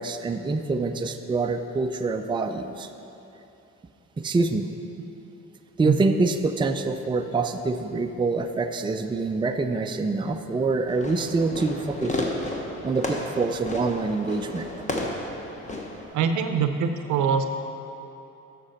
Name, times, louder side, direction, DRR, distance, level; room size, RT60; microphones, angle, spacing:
voice 1, 0.0-2.9 4.2-4.7 5.8-12.3 12.8-14.7, right 3 dB, 15° right, 6 dB, 0.4 m, -25 dB
Fireworks, 10.9-16.0, left 1 dB, 25° left, 1.2 m, -32 dB
voice 2, 16.1-17.5, right 6 dB, 80° right, 7 dB, 0.7 m, -23 dB
7.9 x 6.7 x 5.8 m, 3.0 s
cardioid pair, 90°, 30 cm